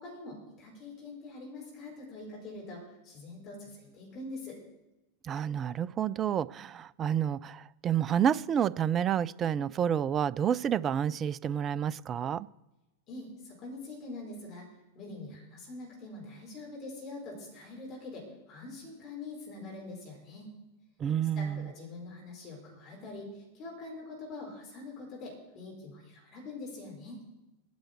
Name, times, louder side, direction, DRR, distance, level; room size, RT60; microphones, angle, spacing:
voice 1, 0.0-4.6 13.1-14.6 14.9-20.5 21.3-27.2, left 2 dB, 35° left, 4.8 m, -44 dB
voice 2, 5.2-12.5 21.0-21.7, right 9 dB, 25° right, 0.3 m, -29 dB
10.5 x 7.8 x 8.4 m
figure-of-eight pair, 90°, 0 cm